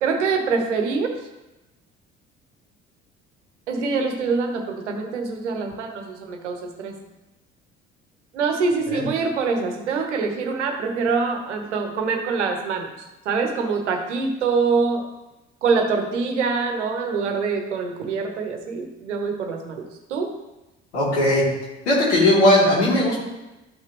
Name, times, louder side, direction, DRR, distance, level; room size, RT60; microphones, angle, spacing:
voice 1, 0.0-1.2 3.7-6.9 8.3-15.1 15.6-20.3, right 4 dB, 80° right, 4 dB, 1.2 m, -25 dB
voice 2, 20.9-21.4 21.8-23.1, left 1 dB, 80° left, -5 dB, 3.1 m, -18 dB
12.0 x 5.8 x 3.1 m, 1.0 s
hypercardioid pair, 55°, 34 cm